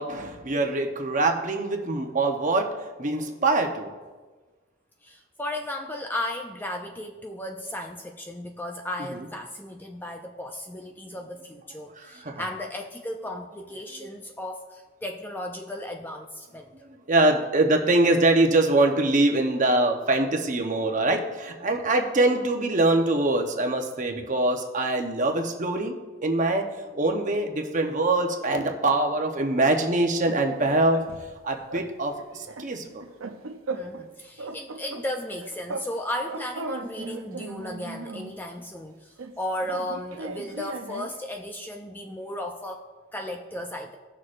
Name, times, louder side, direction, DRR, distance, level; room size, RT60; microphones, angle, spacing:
voice 1, 0.0-3.9 9.1-9.3 11.9-12.4 14.0-14.1 17.1-26.0 26.2-31.0 31.4-33.0, right 2 dB, 35° right, 3 dB, 0.9 m, -24 dB
voice 2, 5.0-16.7 33.7-42.8 43.1-44.0, left 1 dB, 10° left, 3 dB, 0.4 m, -35 dB
sound 1, 30.0-31.4 31.7-31.9 32.2-34.1 34.4-35.9 36.2-38.4 39.2-41.2, right 3 dB, 75° right, 0.6 m, -37 dB
17.5 x 6.4 x 2.5 m, 1.3 s
head